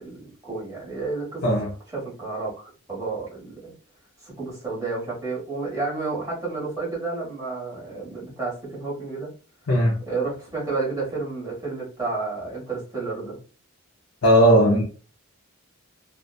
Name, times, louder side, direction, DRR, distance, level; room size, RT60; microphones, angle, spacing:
voice 1, 0.0-1.4 1.9-3.7 4.2-9.3 10.1-13.4 14.8-14.9, right 3 dB, 15° right, 1.1 m, -31 dB
voice 2, 9.7-10.0 14.2-14.8, equal, 65° left, 0.5 m, -17 dB
2.6 x 2.1 x 2.2 m
head